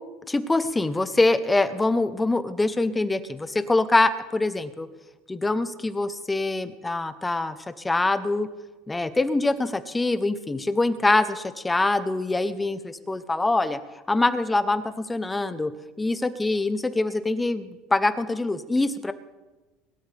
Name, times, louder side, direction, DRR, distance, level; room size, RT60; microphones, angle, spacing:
voice 1, 0.3-4.9 5.3-7.6 7.8-8.5 8.9-13.8 14.1-15.7 16.0-19.1, left 2 dB, 10° left, 12 dB, 0.8 m, -24 dB
21.0 x 13.0 x 3.4 m, 1.2 s
supercardioid pair, 125°, 0 cm